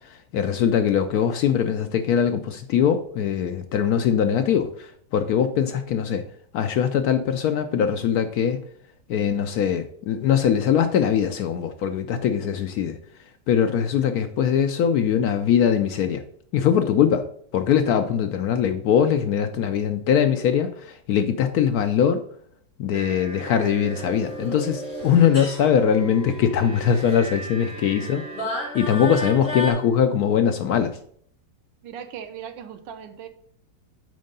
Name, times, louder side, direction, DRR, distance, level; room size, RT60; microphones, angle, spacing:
voice 1, 0.3-6.2 6.5-8.6 9.1-13.0 13.5-16.2 16.5-17.2 17.5-22.2 22.8-28.2 28.7-31.0, left 8 dB, 70° left, 0.9 m, -21 dB
sound 1, 22.9-29.7, equal, 50° left, 3.5 m, -34 dB
voice 2, 31.8-33.3, right 8 dB, 85° right, 1.4 m, -38 dB
6.5 x 4.4 x 5.3 m
omnidirectional pair, 2.0 m